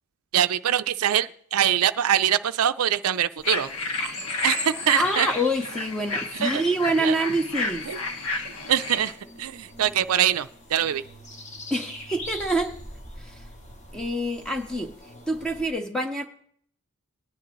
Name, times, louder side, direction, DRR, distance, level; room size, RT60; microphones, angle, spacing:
voice 1, 0.3-3.7 4.0-4.1 4.4-5.3 6.3-6.6 7.0-7.1 7.9-8.0 8.7-11.0, right 10 dB, 85° right, 11 dB, 0.5 m, -24 dB
sound 1, 3.4-9.1, left 3 dB, 85° left, 1.7 m, -31 dB
sound 2, 3.4-15.7, left 2 dB, 35° left, 1.8 m, -42 dB
voice 2, 4.9-7.9 11.7-12.7 13.2-13.4 13.9-15.0 15.3-16.3, right 1 dB, 5° left, 4 dB, 0.7 m, -26 dB
20.0 x 9.9 x 3.0 m, 0.63 s
head